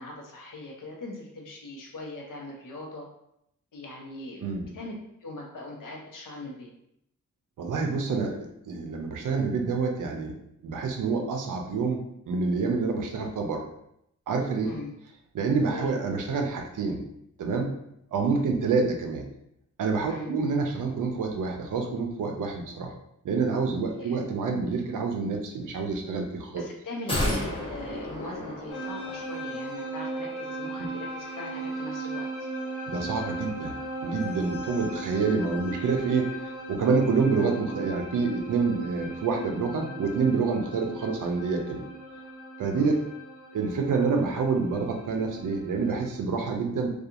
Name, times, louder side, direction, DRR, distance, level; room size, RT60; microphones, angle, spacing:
voice 1, 0.0-3.1 3.7-4.9 5.2-6.7 14.6-14.9 15.6-15.9 20.0-20.3 23.9-24.2 26.5-32.2 42.7-43.0, left 2 dB, 90° left, -1 dB, 0.7 m, -40 dB
voice 2, 7.6-10.4 10.6-13.6 14.3-14.7 15.3-17.0 17.4-17.7 18.1-19.3 19.8-22.9 23.2-26.6 32.9-33.8 34.0-41.8 42.6-43.0 43.5-46.9, right 4 dB, 75° right, 3 dB, 0.5 m, -27 dB
sound 1, 27.1-29.4 29.7-29.8, left 1 dB, 15° left, 0.8 m, -32 dB
sound 2, 28.7-46.1, right 2 dB, 70° left, 1.0 m, -37 dB
2.8 x 2.3 x 2.4 m, 0.77 s
wide cardioid pair, 115°, 31 cm